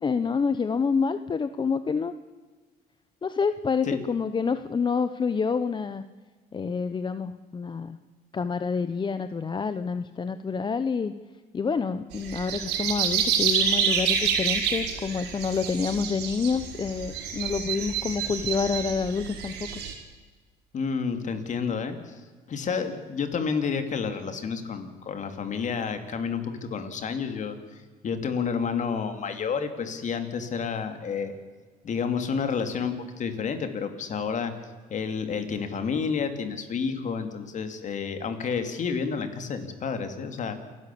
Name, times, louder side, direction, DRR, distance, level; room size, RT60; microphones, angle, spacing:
voice 1, 0.0-2.1 3.2-6.0 6.5-8.0 8.3-11.1 11.5-19.7, left 5 dB, 25° left, 11 dB, 0.8 m, -28 dB
sound 1, 12.1-19.9, right 7 dB, 80° right, 4.8 m, -28 dB
voice 2, 20.7-22.2 22.5-31.3 31.8-34.5 34.9-40.6, left 6 dB, 45° left, 8 dB, 2.8 m, -30 dB
28.0 x 12.0 x 8.5 m, 1.4 s
cardioid pair, 110°, 17 cm